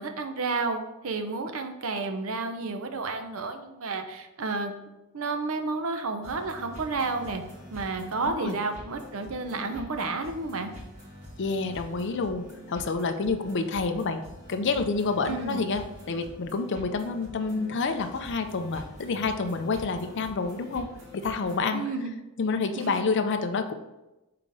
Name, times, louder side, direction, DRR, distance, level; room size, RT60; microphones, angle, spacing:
voice 1, 0.0-4.7 5.1-7.4 7.7-10.7 15.3-15.6 21.7-22.1 22.8-23.0, right 3 dB, 65° right, 6 dB, 0.7 m, -31 dB
sound 1, 6.2-21.6, equal, 30° right, 1.9 m, -46 dB
voice 2, 11.4-14.2 14.5-20.9 21.1-21.8 22.4-23.7, left 4 dB, 55° left, 6 dB, 0.5 m, -28 dB
5.7 x 3.9 x 4.8 m, 0.99 s
head